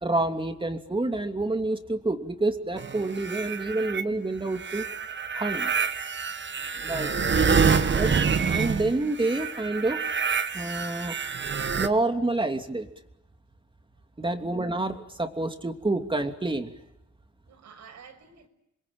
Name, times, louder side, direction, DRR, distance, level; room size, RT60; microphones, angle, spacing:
voice 1, 0.0-4.9 5.3-5.7 6.8-7.1 7.6-10.0 10.5-11.1 11.8-12.9 14.2-16.7, right 2 dB, 15° right, 3.0 m, -28 dB
sound 1, 2.8-4.0 4.5-11.9, right 6 dB, 40° right, 1.8 m, -27 dB
voice 2, 17.5-18.5, right 6 dB, 65° right, 6.5 m, -52 dB
28.0 x 22.5 x 9.0 m
cardioid pair, 90°, 30 cm